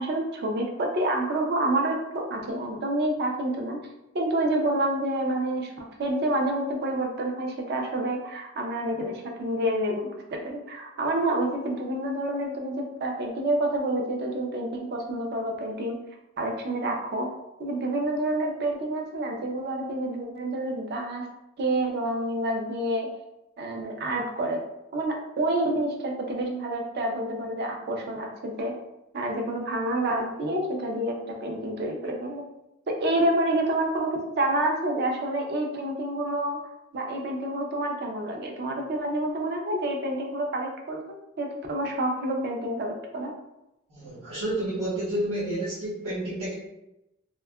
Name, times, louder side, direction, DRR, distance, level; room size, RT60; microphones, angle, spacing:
voice 1, 0.0-3.8 4.1-16.0 16.4-17.3 17.6-21.3 21.6-23.1 23.6-24.6 24.9-28.7 29.1-32.4 32.9-36.7 36.9-43.3, right 1 dB, 50° right, 2 dB, 0.4 m, -28 dB
voice 2, 43.9-46.5, right 1 dB, 85° right, -11 dB, 1.0 m, -30 dB
2.7 x 2.2 x 2.2 m, 0.90 s
head